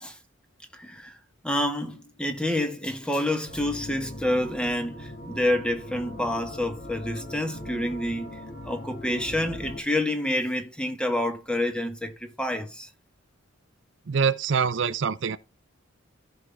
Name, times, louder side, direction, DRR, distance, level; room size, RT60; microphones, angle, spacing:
voice 1, 0.7-1.1 1.4-12.9, left 1 dB, 5° left, 1.0 m, -28 dB
sound 1, 3.5-9.8, left 1 dB, 45° left, 2.3 m, -40 dB
voice 2, 14.1-15.4, right 6 dB, 60° right, 0.5 m, -24 dB
14.5 x 5.4 x 3.4 m
head